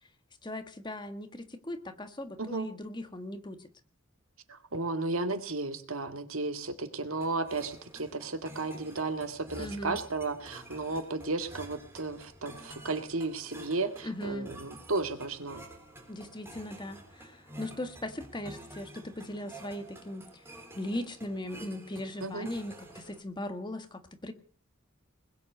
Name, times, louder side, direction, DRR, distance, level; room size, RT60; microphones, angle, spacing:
voice 1, 0.4-3.7 9.5-10.0 14.0-14.5 16.1-20.3 20.8-24.3, left 1 dB, 20° left, 7 dB, 1.6 m, -39 dB
voice 2, 4.5-15.6 22.2-22.5, right 3 dB, 75° right, 7 dB, 2.0 m, -34 dB
sound 1, 7.2-23.2, right 1 dB, 10° right, 3.7 m, -49 dB
21.0 x 7.9 x 7.9 m, 0.43 s
head